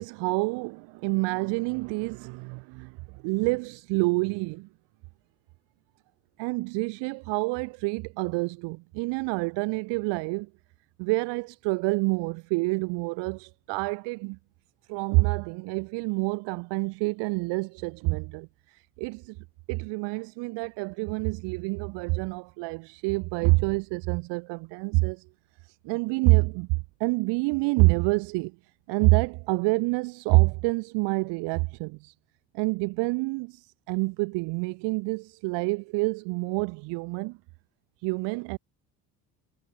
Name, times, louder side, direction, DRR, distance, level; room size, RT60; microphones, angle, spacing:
voice 1, 0.0-4.7 6.4-10.5 11.0-14.4 14.9-19.4 19.7-25.2 25.7-28.6 28.9-32.1 32.5-37.4 38.0-38.6, right 28 dB, 90° right, 2.7 m, -27 dB
cardioid pair, 120°, 41 cm